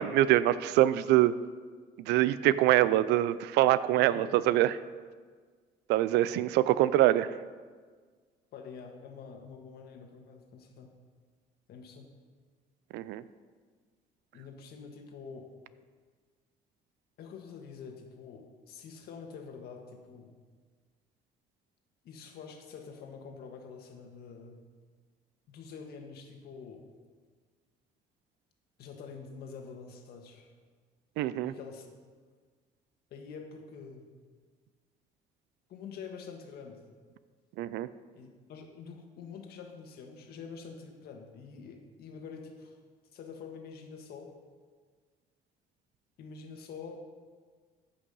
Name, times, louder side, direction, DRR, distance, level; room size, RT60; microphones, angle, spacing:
voice 1, 0.0-1.3 2.0-4.8 5.9-7.3 12.9-13.2 31.2-31.5 37.6-37.9, right 14 dB, 90° right, 16 dB, 0.5 m, -24 dB
voice 2, 8.5-10.9 11.7-12.1 14.3-15.5 17.2-20.3 22.0-24.6 25.5-26.8 28.8-30.5 31.4-31.9 33.1-34.1 35.7-36.8 38.1-42.8 43.1-44.3 46.2-47.0, left 5 dB, 70° left, 3 dB, 1.7 m, -46 dB
14.5 x 5.8 x 5.5 m, 1.5 s
cardioid pair, 110°, 17 cm